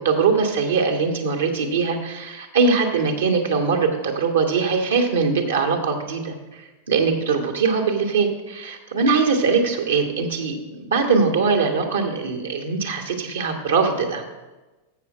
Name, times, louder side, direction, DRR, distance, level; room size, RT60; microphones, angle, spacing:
voice 1, 0.0-14.2, right 5 dB, 65° right, 2 dB, 1.4 m, -21 dB
7.1 x 6.8 x 7.2 m, 1.1 s
figure-of-eight pair, 90°, 0 cm